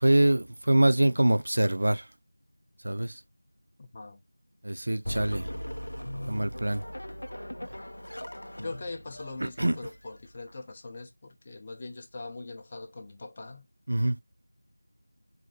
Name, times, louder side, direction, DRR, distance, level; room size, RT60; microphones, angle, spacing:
voice 1, 0.0-2.0 2.8-3.1 4.6-5.5 6.3-6.8 9.6-9.7 13.9-14.2, right 1 dB, 55° right, 0.5 m, -24 dB
voice 2, 3.8-4.2 8.6-13.7, left 3 dB, 20° left, 0.5 m, -41 dB
sound 1, 5.0-10.5, equal, 85° left, 0.5 m, -39 dB
4.1 x 2.5 x 3.9 m
figure-of-eight pair, 175°, 0 cm